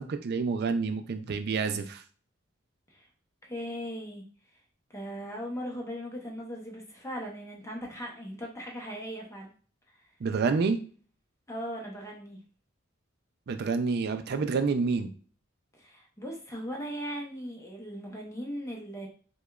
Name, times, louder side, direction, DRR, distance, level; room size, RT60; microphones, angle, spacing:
voice 1, 0.0-2.0 10.2-10.8 13.5-15.1, right 4 dB, 55° right, 9 dB, 0.4 m, -28 dB
voice 2, 3.4-4.2 4.9-9.5 11.5-12.4 15.8-19.1, equal, 15° left, 0 dB, 0.7 m, -38 dB
4.8 x 2.2 x 2.3 m, 0.42 s
head